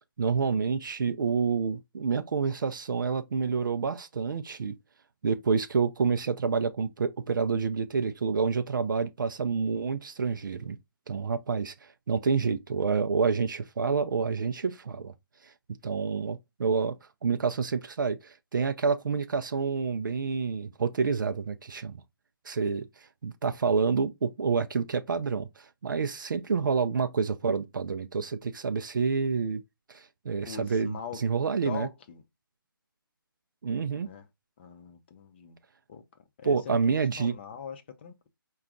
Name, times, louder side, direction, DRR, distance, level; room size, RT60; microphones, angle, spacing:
voice 1, 0.2-4.8 5.2-10.8 11.1-15.1 15.4-15.5 15.8-22.0 22.4-29.6 29.9-31.9 33.6-34.1 36.4-37.4, right 5 dB, 60° right, 0.4 m, -28 dB
voice 2, 30.4-31.2 31.6-32.2 34.0-34.2 34.6-35.6 35.9-36.0 36.4-36.8 37.2-38.3, left 7 dB, 30° left, 0.6 m, -41 dB
4.8 x 2.3 x 3.6 m
figure-of-eight pair, 155°, 12 cm